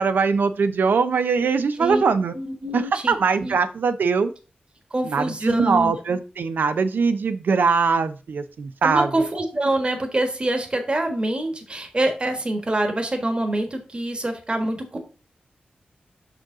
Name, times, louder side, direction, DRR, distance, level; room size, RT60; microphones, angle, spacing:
voice 1, 0.0-2.3 2.7-4.3 5.1-9.1, right 5 dB, 85° right, 11 dB, 0.6 m, -21 dB
voice 2, 2.3-3.2 3.4-3.5 4.9-5.9 8.8-15.0, right 1 dB, 30° right, 5 dB, 1.4 m, -25 dB
6.2 x 4.9 x 3.8 m, 0.34 s
wide cardioid pair, 85°, 3 cm